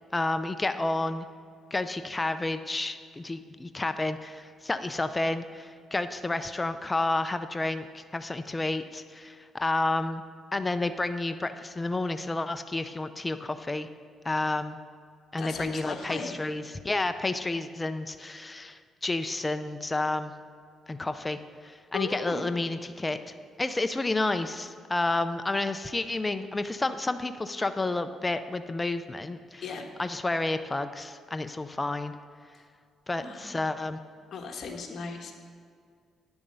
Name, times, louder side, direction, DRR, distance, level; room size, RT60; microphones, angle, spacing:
voice 1, 0.1-1.3 1.7-10.2 10.5-13.9 14.2-14.8 15.3-20.3 20.9-23.2 23.6-29.6 30.0-32.1 33.1-34.0, left 2 dB, 20° left, 10 dB, 0.4 m, -30 dB
voice 2, 15.4-16.4 21.9-22.5 29.6-29.8 33.2-33.6 34.3-35.3, left 5 dB, 55° left, 2 dB, 1.3 m, -36 dB
9.8 x 7.0 x 5.5 m, 2.2 s
cardioid pair, 90°, 0 cm